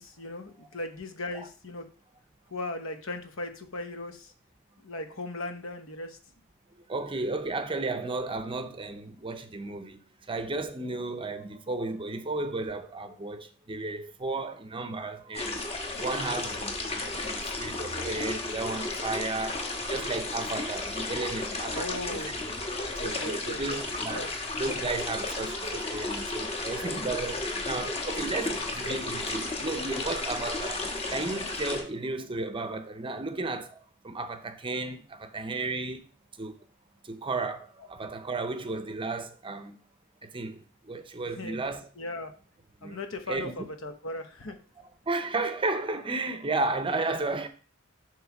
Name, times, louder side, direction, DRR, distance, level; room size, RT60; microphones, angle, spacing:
voice 1, 0.0-1.8 2.5-4.3 4.8-6.2 21.7-22.3 23.0-23.8 24.1-24.3 41.3-41.6 42.0-42.3 42.8-44.6, left 2 dB, 70° left, 1.0 m, -38 dB
voice 2, 6.7-15.6 16.0-22.2 22.9-24.2 24.6-36.6 37.0-39.8 40.2-41.9 42.8-43.0 43.3-43.7 44.8-47.5, right 3 dB, 25° right, 0.6 m, -34 dB
sound 1, 15.3-31.8, left 2 dB, 30° left, 1.2 m, -33 dB
7.7 x 3.1 x 5.9 m
head